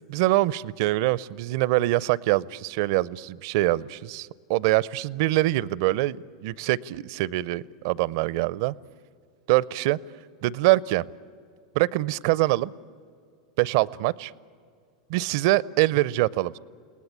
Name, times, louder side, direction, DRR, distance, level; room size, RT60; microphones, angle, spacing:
voice 1, 0.1-8.7 9.5-10.0 10.4-11.0 11.8-12.7 13.6-14.3 15.1-16.6, right 18 dB, 60° right, 23 dB, 0.5 m, -24 dB
29.0 x 19.0 x 8.6 m, 2.2 s
hypercardioid pair, 90°, 2 cm